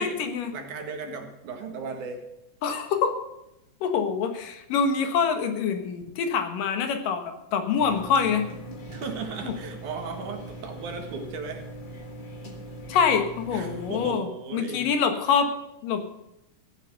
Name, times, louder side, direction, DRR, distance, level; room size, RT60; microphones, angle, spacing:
voice 1, 0.0-0.5 2.6-3.2 3.8-8.4 9.4-9.5 12.9-14.3 14.5-15.5 15.8-16.0, left 6 dB, 80° left, 7 dB, 3.0 m, -25 dB
voice 2, 0.5-2.2 8.9-11.6 13.5-14.9, right 4 dB, 65° right, 4 dB, 3.1 m, -36 dB
sound 1, 7.8-14.2, right 1 dB, 40° left, 0.7 m, -40 dB
15.0 x 9.1 x 6.6 m, 0.87 s
omnidirectional pair, 3.9 m